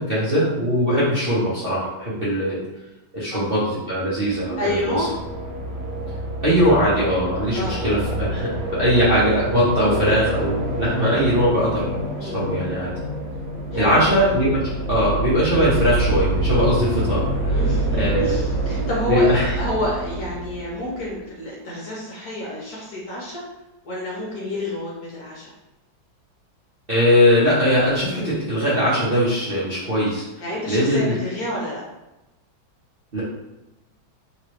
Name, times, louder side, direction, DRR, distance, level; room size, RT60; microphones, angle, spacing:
voice 1, 0.0-2.6 3.1-3.6 3.9-5.1 6.4-12.9 13.7-14.6 14.9-17.5 17.9-18.4 19.1-19.5 26.9-30.2 30.7-31.1 33.1-33.2, equal, 45° right, -11 dB, 0.7 m, -20 dB
sound 1, 4.2-21.1, right 1 dB, 70° right, 1.2 m, -26 dB
voice 2, 4.6-5.1 7.5-7.8 12.2-12.4 13.7-14.3 17.5-23.4 23.8-25.5 30.4-31.8, left 1 dB, 60° left, -5 dB, 1.2 m, -29 dB
3.2 x 3.1 x 3.0 m, 0.98 s
omnidirectional pair, 2.2 m